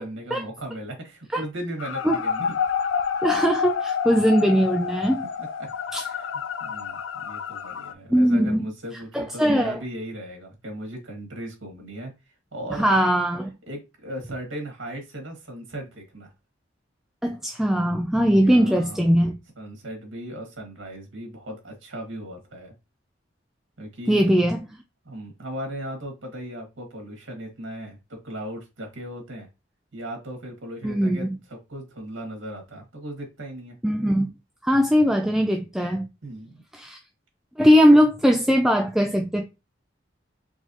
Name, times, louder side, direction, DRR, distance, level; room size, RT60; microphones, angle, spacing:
voice 1, 0.0-2.5 5.4-5.5 6.0-6.3 6.6-12.1 12.5-12.9 13.7-16.3 18.3-19.0 19.6-22.7 23.8-24.3 25.1-29.5 29.9-33.8 36.2-36.6, right 1 dB, 80° right, 1.9 m, -37 dB
sound 1, 1.8-7.9, left 6 dB, 75° left, 0.4 m, -28 dB
voice 2, 3.2-5.2 5.9-6.0 8.1-8.7 9.1-9.8 12.8-13.5 17.2-19.4 24.1-24.6 30.8-31.4 33.8-34.3 34.6-36.1 36.7-37.0 37.6-39.5, equal, 5° right, 0.4 m, -20 dB
4.7 x 3.5 x 2.8 m
head